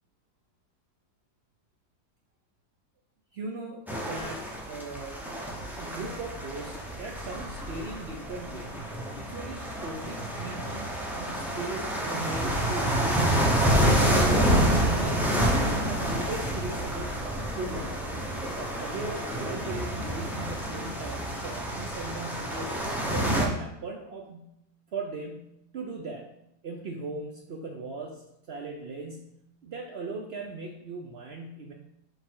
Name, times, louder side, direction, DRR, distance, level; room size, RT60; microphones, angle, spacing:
voice 1, 3.3-5.3 5.8-8.8 9.2-13.2 14.2-17.1 17.6-18.1 18.6-22.8 23.1-24.6 24.9-26.3 26.6-31.7, right 3 dB, 70° right, 1 dB, 0.6 m, -39 dB
sound 1, 3.9-23.5, right 1 dB, ahead, 0.4 m, -28 dB
5.2 x 4.8 x 3.7 m, 0.81 s
omnidirectional pair, 1.8 m